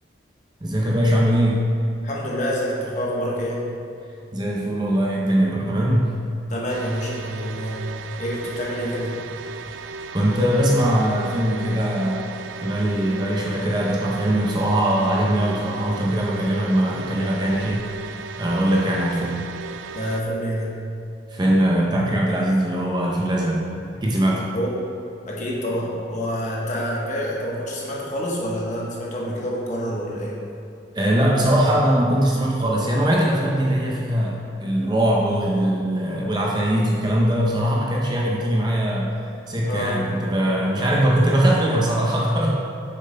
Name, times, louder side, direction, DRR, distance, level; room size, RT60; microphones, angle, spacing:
voice 1, 0.6-1.7 4.3-6.2 10.1-12.3 12.6-19.4 21.3-23.7 24.0-24.4 30.9-39.1 39.5-42.5, right 1 dB, 20° right, -3 dB, 0.6 m, -21 dB
voice 2, 2.0-3.7 6.5-7.8 8.2-9.2 19.9-20.8 24.5-24.7 25.3-30.4 39.7-40.0, equal, 40° left, -4 dB, 1.1 m, -27 dB
sound 1, 6.7-20.2, right 4 dB, 75° right, 0.3 m, -36 dB
7.6 x 6.6 x 2.2 m, 2.6 s
head